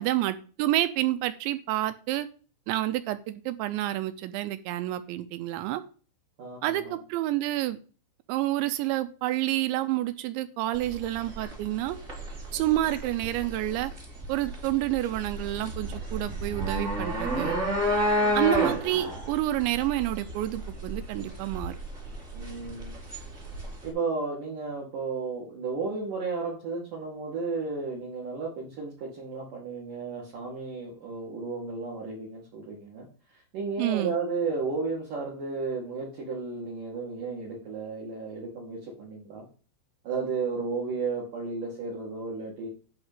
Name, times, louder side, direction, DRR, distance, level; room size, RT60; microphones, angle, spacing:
voice 1, 0.0-2.3 2.7-5.8 6.6-7.8 8.3-12.0 12.5-13.9 14.3-17.6 18.3-21.8 33.8-34.2, right 14 dB, 80° right, 11 dB, 2.8 m, -29 dB
voice 2, 6.4-7.0 12.5-12.7 18.1-18.4 22.3-23.0 23.8-33.1 33.5-39.5 40.0-42.7, right 4 dB, 50° right, -3 dB, 3.2 m, -33 dB
sound 1, 10.7-23.9, equal, 20° right, 2.5 m, -31 dB
11.0 x 4.3 x 7.5 m, 0.39 s
omnidirectional pair, 5.7 m